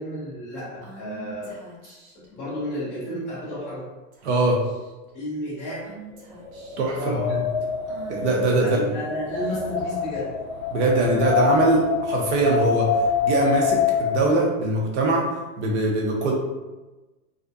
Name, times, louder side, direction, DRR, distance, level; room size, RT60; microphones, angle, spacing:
voice 1, 0.0-1.5 2.1-3.9 5.1-5.9 6.9-7.3 8.6-10.3, equal, 15° left, -11 dB, 0.3 m, -32 dB
Female speech woman speaking / Whispering, 0.8-2.3 3.3-3.7 4.1-4.3 4.6-5.1 5.8-6.9 7.8-9.8, right 5 dB, 75° right, 0.8 m, -45 dB
voice 2, 4.2-4.6 6.8-7.4 8.1-8.9 10.7-12.9 13.2-16.3, right 2 dB, 55° right, -1 dB, 0.5 m, -22 dB
Wind, 6.4-14.4, left 5 dB, 50° left, 0.7 m, -26 dB
2.4 x 2.1 x 2.5 m, 1.1 s
supercardioid pair, 160°, 41 cm